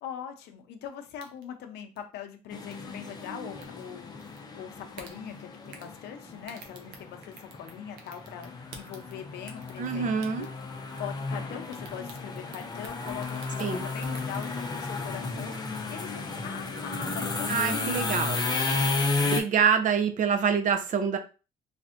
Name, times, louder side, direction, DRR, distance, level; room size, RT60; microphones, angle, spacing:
voice 1, 0.0-10.5 10.9-18.2, left 8 dB, 75° left, 5 dB, 0.6 m, -42 dB
sound 1, 1.2-1.5 2.0-2.1 2.7-2.9 3.5-3.7 4.2-4.4 4.9-5.1 5.7-5.9 6.4-7.7 8.0-9.2 9.5-9.9 10.2-10.7 11.0-11.4 11.7-14.5, right 5 dB, 85° right, 0.7 m, -47 dB
sound 2, 2.5-19.4, left 3 dB, 25° left, 0.6 m, -33 dB
voice 2, 9.8-10.5 13.6-13.9 17.5-18.4 19.3-21.2, right 6 dB, 50° right, 7 dB, 0.5 m, -26 dB
3.3 x 2.5 x 2.5 m, 0.33 s
cardioid pair, 110°, 17 cm